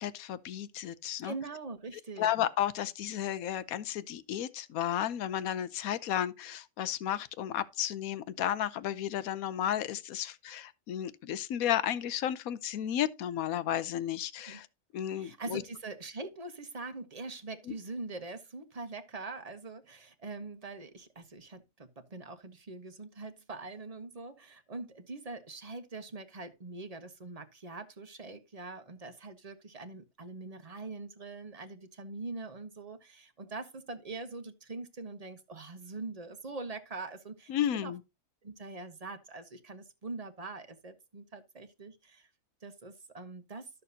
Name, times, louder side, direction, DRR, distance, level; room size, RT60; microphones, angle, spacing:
voice 1, 0.0-1.3 2.2-14.7 14.9-15.6 37.5-38.0, left 11 dB, 70° left, 1.1 m, -33 dB
voice 2, 1.2-2.3 14.5-14.6 15.1-37.9 38.4-42.3 42.6-43.7, right 3 dB, 30° right, 0.9 m, -43 dB
12.5 x 6.7 x 2.7 m
omnidirectional pair, 1.7 m